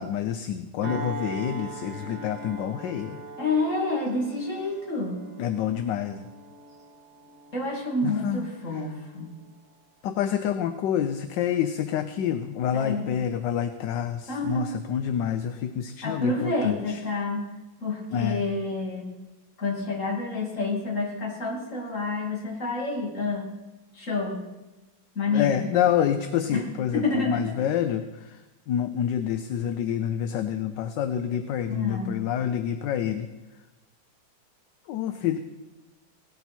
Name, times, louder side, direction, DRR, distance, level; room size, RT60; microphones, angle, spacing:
voice 1, 0.0-3.2 5.4-6.3 8.0-8.5 10.0-17.0 18.1-18.4 25.3-28.4 28.7-33.3 34.9-35.4, left 9 dB, 70° left, 9 dB, 1.2 m, -27 dB
sound 1, 0.8-9.7 10.1-10.4, right 3 dB, 80° right, 3.8 m, -41 dB
voice 2, 3.4-5.2 7.5-9.3 12.7-13.1 14.3-14.7 16.0-17.5 17.8-19.0 19.6-23.4 23.9-24.4 25.1-25.7 26.5-26.6 26.9-27.5 31.7-32.1, left 3 dB, 35° left, -1 dB, 3.0 m, -28 dB
18.0 x 12.5 x 4.4 m, 1.1 s
omnidirectional pair, 2.2 m